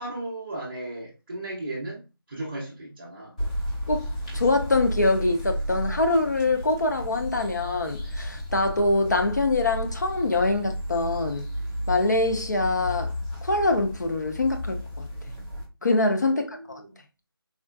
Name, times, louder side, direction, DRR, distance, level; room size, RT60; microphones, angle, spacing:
voice 1, 0.0-2.0 2.3-3.4 16.3-17.0, right 1 dB, 20° right, 0.5 m, -36 dB
sound 1, 3.4-15.6, equal, 15° left, 0.7 m, -33 dB
voice 2, 4.3-11.5 11.9-13.1 13.4-15.1 15.8-16.8, left 2 dB, 45° left, 0.4 m, -24 dB
3.6 x 2.1 x 2.2 m
figure-of-eight pair, 165°, 13 cm